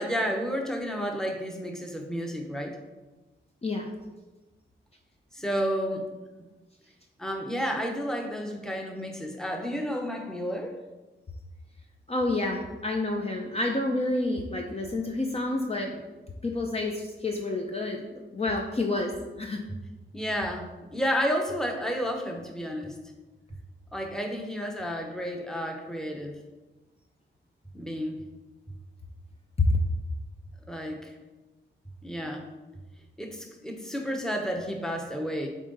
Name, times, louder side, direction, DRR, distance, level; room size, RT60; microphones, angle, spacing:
voice 1, 0.0-2.8 5.3-6.1 7.2-10.8 20.1-22.9 23.9-26.4 27.7-28.2 30.7-31.1 32.0-32.4 33.2-35.5, equal, 5° left, 2 dB, 0.9 m, -31 dB
voice 2, 12.1-16.0 16.4-19.1 19.4-19.6 29.6-29.7, left 2 dB, 30° left, 1 dB, 0.6 m, -29 dB
7.5 x 3.7 x 3.9 m, 1.1 s
wide cardioid pair, 110°, 20 cm